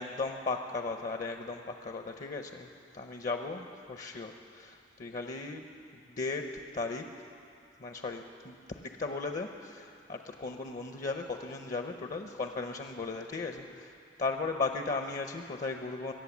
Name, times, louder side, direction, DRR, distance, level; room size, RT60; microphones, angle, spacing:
voice 1, 0.0-5.6 5.9-7.0 7.8-16.1, left 3 dB, 45° left, 5 dB, 0.7 m, -36 dB
22.5 x 8.3 x 7.2 m, 2.5 s
head